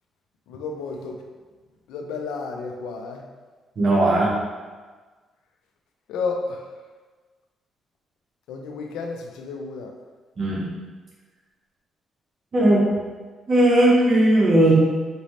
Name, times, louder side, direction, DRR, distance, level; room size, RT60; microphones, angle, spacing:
voice 1, 0.5-1.2 1.9-3.2 6.1-6.7 8.5-9.9, left 4 dB, 90° left, 3 dB, 0.5 m, -31 dB
voice 2, 3.8-4.3 10.4-10.7 12.5-12.8 13.5-14.7, right 1 dB, 50° right, -5 dB, 1.0 m, -17 dB
5.1 x 2.7 x 3.1 m, 1.4 s
cardioid pair, 90°, 0 cm